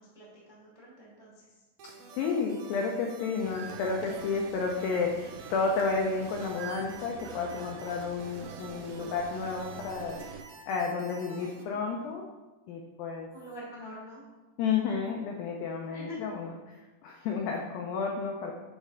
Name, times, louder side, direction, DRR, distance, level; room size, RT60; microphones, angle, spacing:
voice 1, 0.0-1.5 13.3-14.2 15.8-16.2, equal, 30° right, -6 dB, 0.7 m, -45 dB
voice 2, 1.8-10.2 10.7-12.3 12.7-13.3 14.6-18.5, left 5 dB, 90° left, 1 dB, 2.0 m, -31 dB
sound 1, 1.8-11.6, right 3 dB, 70° right, 2.3 m, -50 dB
sound 2, 3.4-10.4, right 7 dB, 90° right, 2.8 m, -45 dB
9.6 x 3.3 x 5.0 m, 1.1 s
omnidirectional pair, 4.9 m